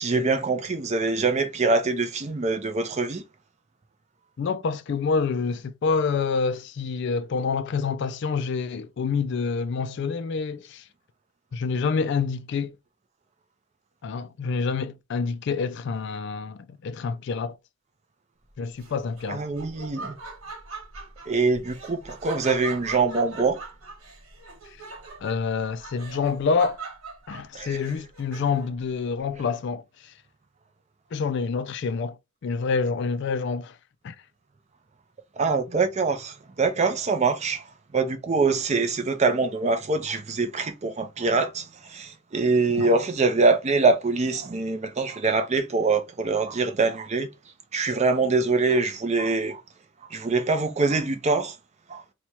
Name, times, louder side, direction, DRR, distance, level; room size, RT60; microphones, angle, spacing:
voice 1, 0.0-3.2 19.3-20.2 21.3-23.6 27.5-27.8 35.4-37.6 37.9-47.3 47.7-49.6 50.1-51.6 51.9-52.0, right 3 dB, 30° right, 0.4 m, -24 dB
voice 2, 4.4-10.8 11.5-12.8 14.0-17.6 18.6-19.4 25.2-26.8 27.3-29.8 31.1-32.2 32.4-33.7 34.0-34.2 42.8-42.9, left 5 dB, 55° left, 0.3 m, -27 dB
Laughter, 18.8-28.8, right 3 dB, 75° right, 1.2 m, -41 dB
3.0 x 2.2 x 4.2 m
head